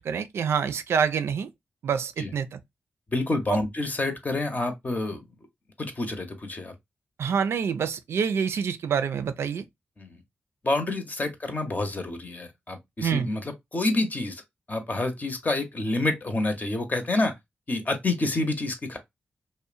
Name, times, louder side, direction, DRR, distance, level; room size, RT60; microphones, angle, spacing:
voice 1, 0.0-1.5 1.8-2.6 3.5-3.6 7.2-9.6 13.0-13.3, right 7 dB, 80° right, 0.3 m, -26 dB
voice 2, 3.1-5.3 5.8-6.7 10.0-10.1 10.6-13.4 13.7-14.4 14.7-17.3 17.7-19.0, left 2 dB, 40° left, 0.7 m, -28 dB
2.7 x 2.1 x 2.4 m
cardioid pair, 45°, 4 cm